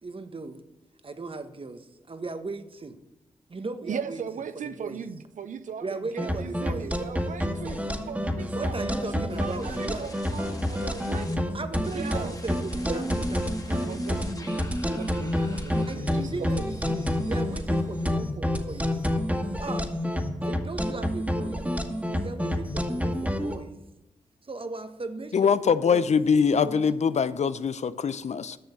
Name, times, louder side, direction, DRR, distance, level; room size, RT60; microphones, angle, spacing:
voice 1, 0.0-0.6 1.0-3.0 3.5-4.2 4.8-5.0 5.8-6.9 8.5-10.1 10.8-11.0 11.5-14.3 15.9-19.0 19.6-19.9 20.4-21.6 22.2-23.8 24.4-25.5 25.8-27.2, right 3 dB, 40° right, 9 dB, 1.2 m, -37 dB
voice 2, 3.8-8.8 9.1-12.4 12.8-13.0 13.8-14.7 15.0-16.3 16.6-16.7, right 7 dB, 70° right, 11 dB, 0.7 m, -39 dB
sound 1, 6.2-23.5, equal, 10° right, 2.0 m, -28 dB
sound 2, 9.3-11.4 11.8-18.4 18.7-19.3, left 2 dB, 25° left, 1.6 m, -47 dB
voice 3, 25.3-28.6, left 6 dB, 55° left, 14 dB, 0.6 m, -23 dB
11.0 x 6.3 x 7.2 m, 0.93 s
supercardioid pair, 40°, 14 cm